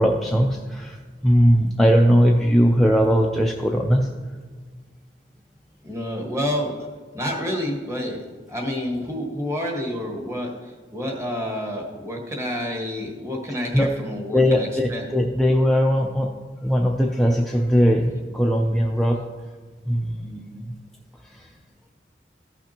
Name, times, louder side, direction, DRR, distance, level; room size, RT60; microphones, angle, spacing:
voice 1, 0.0-4.1 13.7-13.9 14.3-16.3 16.6-19.3 19.9-20.7 21.2-21.5, equal, ahead, -1 dB, 0.4 m, -19 dB
voice 2, 5.8-6.9 7.1-8.2 8.5-15.0, equal, 15° right, -1 dB, 1.5 m, -29 dB
14.5 x 6.0 x 2.9 m, 1.5 s
head